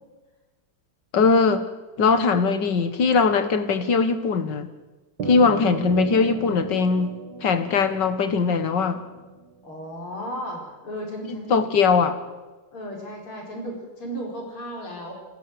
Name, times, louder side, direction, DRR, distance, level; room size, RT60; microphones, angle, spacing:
voice 1, 1.1-1.6 2.0-4.7 5.3-9.0 11.3-12.2, left 5 dB, 55° left, 10 dB, 2.0 m, -21 dB
voice 2, 5.2-5.6 9.6-11.7 12.7-15.1, equal, 75° left, 0 dB, 5.7 m, -34 dB
sound 1, 5.2-9.8, right 4 dB, 55° right, 1.9 m, -36 dB
28.5 x 13.0 x 7.8 m, 1.2 s
omnidirectional pair, 2.4 m